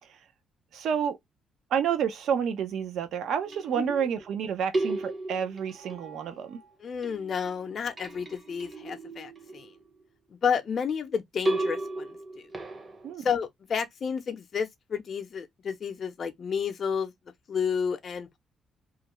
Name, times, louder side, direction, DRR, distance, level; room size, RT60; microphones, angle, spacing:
voice 1, 0.7-1.2 1.7-6.6 13.0-13.3, right 8 dB, 75° right, 0.6 m, -29 dB
sound 1, 3.4-4.3 4.7-6.7 7.0-10.0 11.5-13.1, right 2 dB, 35° right, 0.8 m, -35 dB
voice 2, 3.8-4.1 6.8-9.7 10.3-12.5 13.2-17.1 17.5-18.4, left 6 dB, 50° left, 0.5 m, -31 dB
2.4 x 2.2 x 2.9 m
cardioid pair, 90°, 0 cm